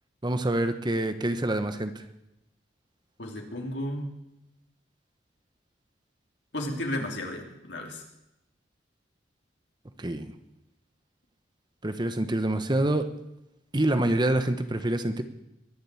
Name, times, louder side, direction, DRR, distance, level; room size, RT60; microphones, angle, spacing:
voice 1, 0.2-2.0 10.0-10.3 11.8-13.0 13.7-15.2, right 1 dB, 25° right, 9 dB, 1.0 m, -26 dB
voice 2, 3.2-4.1 6.5-8.0, left 1 dB, 65° left, 1 dB, 3.2 m, -33 dB
22.5 x 7.5 x 8.4 m, 0.87 s
head